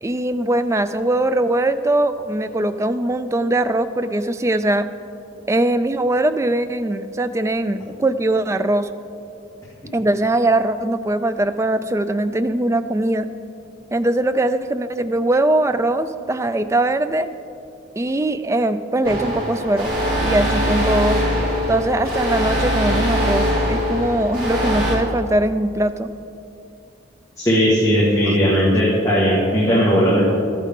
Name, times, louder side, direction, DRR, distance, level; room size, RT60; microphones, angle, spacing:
voice 1, 0.0-4.9 5.5-8.9 9.9-13.3 13.9-17.3 18.0-19.9 20.2-21.2 21.7-26.1 28.3-28.4, right 1 dB, 15° right, 11 dB, 0.3 m, -21 dB
sound 1, 19.0-25.0, equal, 50° right, 2.4 m, -21 dB
voice 2, 27.4-30.3, equal, 15° left, -8 dB, 1.8 m, -17 dB
13.5 x 9.3 x 3.7 m, 2.6 s
head